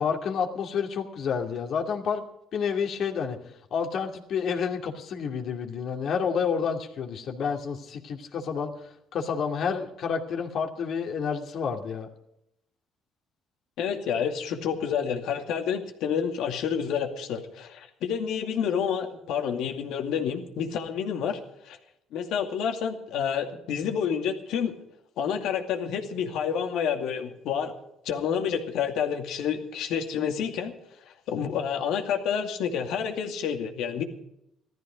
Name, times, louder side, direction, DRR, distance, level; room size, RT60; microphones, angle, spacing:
voice 1, 0.0-2.2 2.5-3.4 3.7-8.7 9.1-12.1, left 6 dB, 60° left, 3 dB, 2.4 m, -29 dB
voice 2, 13.8-21.4 21.6-21.8 22.1-24.7 25.2-27.7 28.0-30.7 31.1-34.0, left 7 dB, 80° left, 4 dB, 2.4 m, -29 dB
16.0 x 13.5 x 5.1 m, 0.80 s
cardioid pair, 100°, 0 cm